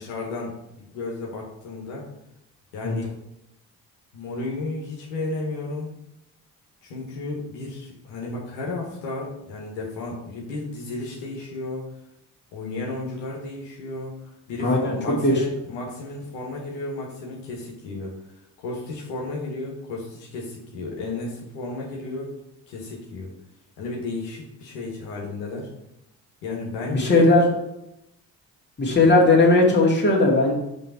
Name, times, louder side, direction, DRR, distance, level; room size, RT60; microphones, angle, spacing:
voice 1, 0.0-2.0 2.7-3.1 4.1-5.9 6.8-11.9 12.5-18.1 18.6-22.3 22.7-23.3 23.8-25.7 26.4-27.3, left 2 dB, 85° left, -2 dB, 1.2 m, -33 dB
voice 2, 14.6-14.9 15.2-15.3 26.9-27.5 28.8-30.5, left 2 dB, 25° left, -3 dB, 2.1 m, -17 dB
5.3 x 3.2 x 5.6 m, 0.84 s
hypercardioid pair, 50°, 40 cm